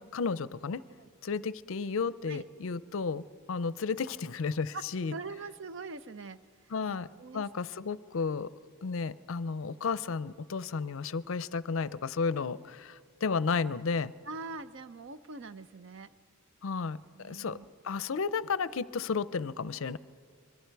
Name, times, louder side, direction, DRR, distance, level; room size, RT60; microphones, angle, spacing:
voice 1, 0.0-0.8 1.2-5.1 6.7-7.1 7.3-8.5 8.8-14.1 16.6-17.6 17.8-20.0, left 5 dB, 65° left, 17 dB, 0.5 m, -33 dB
voice 2, 5.1-6.4 6.6-7.4 14.0-16.1 17.1-17.7, right 3 dB, 55° right, 13 dB, 0.6 m, -43 dB
26.5 x 22.5 x 4.6 m, 2.3 s
head